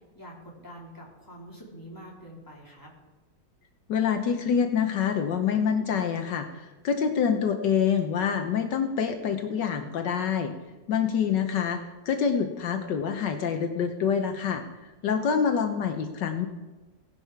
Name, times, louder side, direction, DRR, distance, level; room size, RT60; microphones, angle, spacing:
voice 1, 0.1-2.9, equal, 10° left, -3 dB, 3.3 m, -45 dB
voice 2, 3.9-10.5 10.9-11.8 12.1-16.5, left 7 dB, 75° left, 5 dB, 1.5 m, -26 dB
16.5 x 11.5 x 4.6 m, 1.2 s
omnidirectional pair, 2.0 m